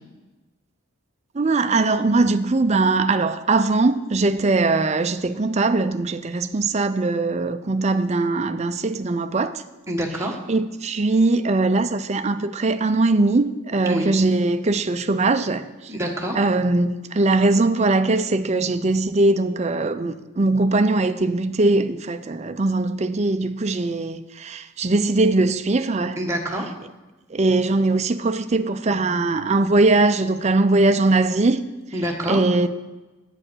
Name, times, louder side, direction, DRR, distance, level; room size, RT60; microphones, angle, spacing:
voice 1, 1.3-9.5 10.5-15.7 16.3-26.2 27.3-31.7 32.3-32.7, right 2 dB, 30° right, 0.4 m, -20 dB
voice 2, 9.9-10.4 13.8-14.1 15.9-16.4 26.2-26.7 31.9-32.4, equal, 15° right, 1.3 m, -26 dB
9.0 x 8.7 x 6.2 m
head